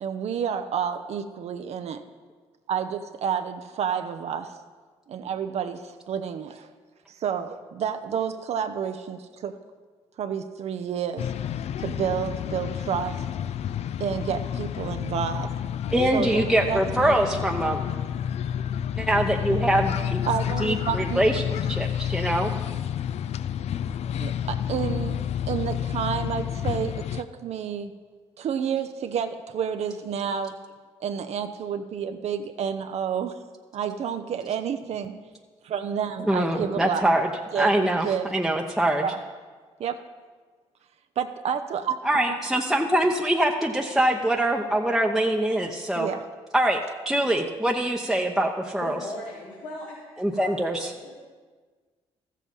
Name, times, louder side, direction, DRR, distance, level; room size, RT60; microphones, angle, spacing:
voice 1, 0.0-2.0 2.7-4.5 5.1-6.5 7.1-9.5 10.2-11.3 11.8-13.2 14.0-15.5 16.1-17.2 20.3-21.3 24.2-25.2 25.5-27.9 28.4-30.5 31.0-33.3 33.7-35.1 35.6-37.1 37.5-38.3 39.0-39.2 39.8-40.0 41.2-42.4 46.0-46.2, right 8 dB, 60° right, 8 dB, 0.7 m, -30 dB
sound 1, 11.2-27.2, left 9 dB, 60° left, 0.4 m, -30 dB
voice 2, 15.9-17.8 19.0-20.2 20.6-22.5 36.3-37.3 37.6-39.1 42.0-46.1 46.5-46.8 47.1-49.0 50.2-50.9, right 1 dB, 5° right, 0 dB, 0.9 m, -24 dB
voice 3, 48.8-50.0 50.3-50.6 50.9-51.1, left 1 dB, 80° left, -6 dB, 2.2 m, -38 dB
13.5 x 7.5 x 5.4 m, 1.5 s
supercardioid pair, 65°, 12 cm